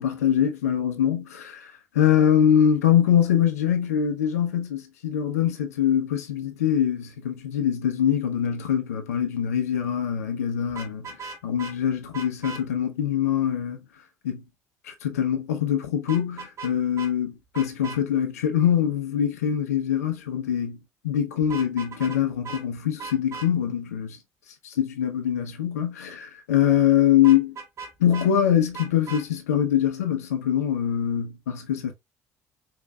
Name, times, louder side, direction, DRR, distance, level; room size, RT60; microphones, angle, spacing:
voice 1, 0.0-11.2 11.4-13.8 14.2-14.4 14.8-20.8 21.0-24.2 24.6-27.6 28.0-31.9, left 9 dB, 75° left, 0.7 m, -23 dB
Vehicle horn car horn honking, 10.7-11.7 12.1-12.6 16.1-16.7 17.0-17.1 17.5-18.0 21.4-22.2 22.4-22.6 23.0-23.5 27.2-28.3 28.7-29.2, right 4 dB, 40° right, 1.5 m, -37 dB
5.1 x 3.0 x 2.4 m
figure-of-eight pair, 55°, 8 cm